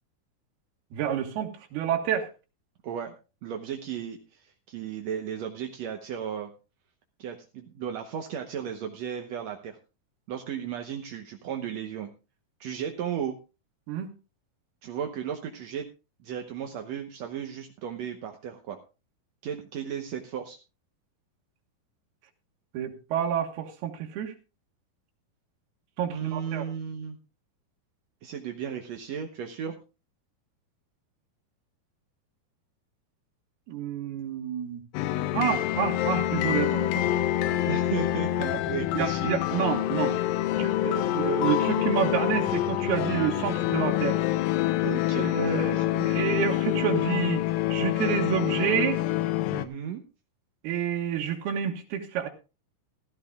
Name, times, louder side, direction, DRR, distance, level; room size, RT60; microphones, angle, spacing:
voice 1, 0.9-2.3 13.9-14.1 22.7-24.3 26.0-26.7 33.7-34.8 35.3-37.1 39.0-40.2 40.6-44.2 45.1-47.4 47.7-49.0 50.6-52.3, right 9 dB, 85° right, 1 dB, 3.5 m, -29 dB
voice 2, 2.8-3.1 3.4-6.5 7.2-9.8 10.3-12.1 12.6-13.4 14.8-15.9 16.2-18.8 19.4-20.6 26.1-27.2 28.2-29.8 37.7-39.3 44.8-45.3 45.7-45.8 49.5-50.0, right 8 dB, 70° right, 4 dB, 1.6 m, -35 dB
sound 1, 34.9-49.7, left 14 dB, 75° left, 2.3 m, -26 dB
16.0 x 14.5 x 2.3 m, 0.30 s
omnidirectional pair, 4.4 m